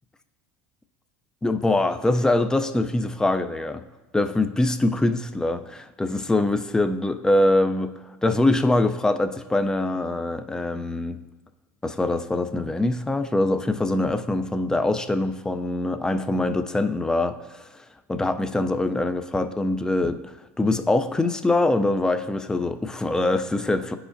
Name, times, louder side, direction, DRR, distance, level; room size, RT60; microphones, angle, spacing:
voice 1, 1.4-3.8 4.1-11.2 11.8-24.0, left 2 dB, 10° left, 9 dB, 0.3 m, -23 dB
9.8 x 4.9 x 2.5 m, 1.1 s
supercardioid pair, 105°, 7 cm